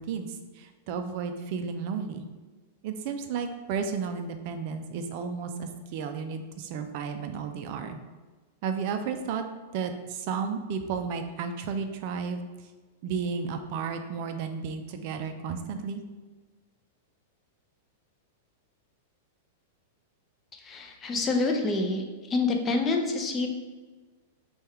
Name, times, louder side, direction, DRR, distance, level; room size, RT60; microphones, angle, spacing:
voice 1, 0.0-2.3 2.8-8.0 8.6-9.5 9.7-12.4 13.0-16.0, right 6 dB, 50° right, 7 dB, 0.4 m, -33 dB
voice 2, 20.5-22.0 22.3-23.5, left 3 dB, 20° left, 2 dB, 0.5 m, -27 dB
3.4 x 2.3 x 4.3 m, 1.3 s
hypercardioid pair, 140°, 0 cm